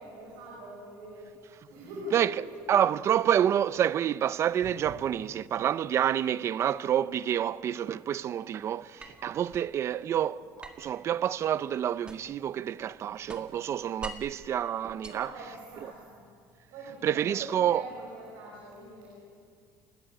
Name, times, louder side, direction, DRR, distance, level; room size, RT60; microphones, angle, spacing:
voice 1, 0.0-2.6 4.8-5.0 15.0-16.3 16.7-19.1, right 1 dB, 80° right, 5.9 m, -43 dB
voice 2, 2.7-15.3 17.0-17.8, right 10 dB, 35° right, 0.5 m, -28 dB
sound 1, 9.0-9.7 10.6-12.5 12.8-14.4 14.9-16.0, right 1 dB, 15° right, 1.8 m, -46 dB
30.0 x 14.0 x 8.8 m
cardioid pair, 150°, 8 cm